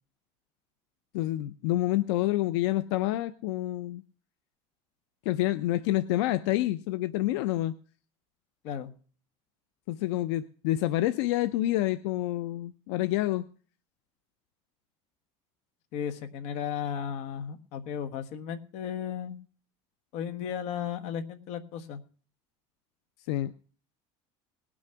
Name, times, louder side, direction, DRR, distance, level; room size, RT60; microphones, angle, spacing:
voice 1, 1.1-4.0 5.3-7.7 9.9-13.5 23.3-23.5, left 15 dB, 80° left, 13 dB, 0.6 m, -28 dB
voice 2, 15.9-19.4 20.1-22.0, left 8 dB, 55° left, 9 dB, 1.4 m, -35 dB
18.5 x 6.3 x 5.7 m, 0.42 s
cardioid pair, 155°, 14 cm